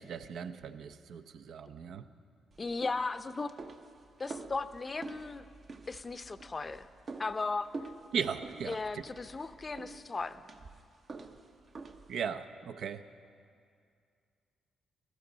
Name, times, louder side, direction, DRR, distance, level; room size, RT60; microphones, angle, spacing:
voice 1, 0.0-2.1 8.1-9.0 12.1-13.1, right 6 dB, 70° right, 10 dB, 0.5 m, -37 dB
sound 1, 2.5-12.2, right 3 dB, 50° right, 0.9 m, -48 dB
voice 2, 2.6-3.5 4.2-5.5 5.9-6.9 7.2-7.7 8.7-10.4, left 3 dB, 35° left, 12 dB, 0.5 m, -36 dB
16.0 x 13.0 x 3.9 m, 2.3 s
supercardioid pair, 55°, 0 cm